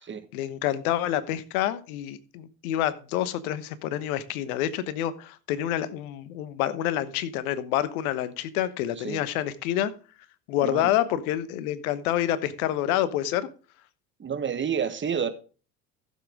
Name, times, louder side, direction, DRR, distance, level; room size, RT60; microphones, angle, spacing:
voice 1, 0.3-9.9 10.5-13.5, left 12 dB, 65° left, 1.2 m, -28 dB
voice 2, 14.2-15.3, right 7 dB, 25° right, 1.5 m, -29 dB
14.5 x 7.4 x 3.6 m
hypercardioid pair, 75°, 47 cm